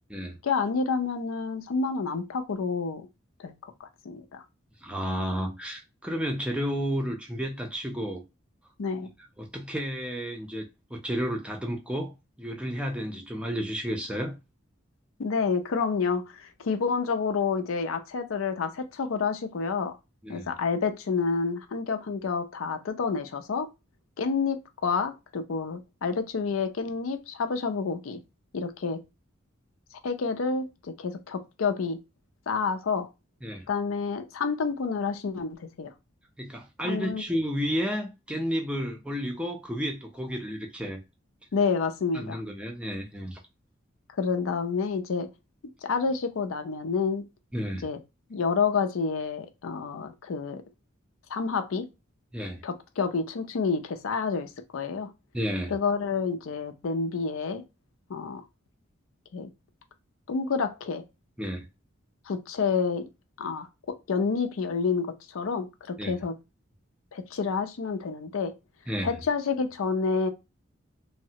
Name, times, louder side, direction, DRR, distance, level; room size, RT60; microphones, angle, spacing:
voice 1, 0.4-3.1 3.4-3.5 3.8-4.4 8.8-9.1 15.2-20.0 20.3-23.7 24.2-28.2 28.5-29.0 30.0-30.7 31.0-32.0 32.5-33.1 33.7-35.9 36.8-37.2 41.5-42.4 44.2-45.3 45.8-47.3 47.8-48.0 48.3-50.6 51.3-51.9 52.6-55.1 55.7-57.6 58.1-58.4 59.3-59.5 60.3-61.0 62.3-63.0 63.4-66.3 67.1-68.5 69.0-70.3, left 5 dB, 85° left, 0.5 m, -29 dB
voice 2, 4.8-8.2 9.4-10.7 10.9-12.1 12.4-14.4 20.2-20.5 33.4-33.7 36.4-41.0 42.1-43.4 47.5-47.9 52.3-52.6 55.3-55.7 61.4-61.6 66.0-66.1 68.9-69.1, equal, 5° right, 0.4 m, -31 dB
3.2 x 2.0 x 2.7 m
head